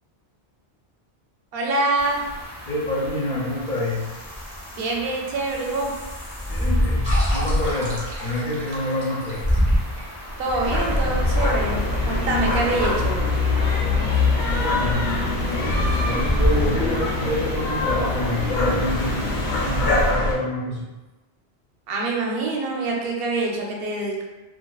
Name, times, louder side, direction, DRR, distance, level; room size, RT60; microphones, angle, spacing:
voice 1, 1.5-2.2 4.7-5.9 10.4-13.2 21.9-24.2, right 2 dB, 65° right, -1 dB, 0.7 m, -25 dB
sound 1, 2.0-20.1, equal, 20° left, 0.6 m, -28 dB
voice 2, 2.7-4.1 6.5-9.4 14.5-15.0 15.5-19.2 19.6-20.8, left 1 dB, 50° left, -5 dB, 0.7 m, -27 dB
sound 2, 7.0-12.5, equal, 25° right, 0.7 m, -36 dB
sound 3, 10.6-20.4, left 2 dB, 85° left, 0.9 m, -23 dB
2.4 x 2.3 x 2.2 m, 1.1 s
omnidirectional pair, 1.1 m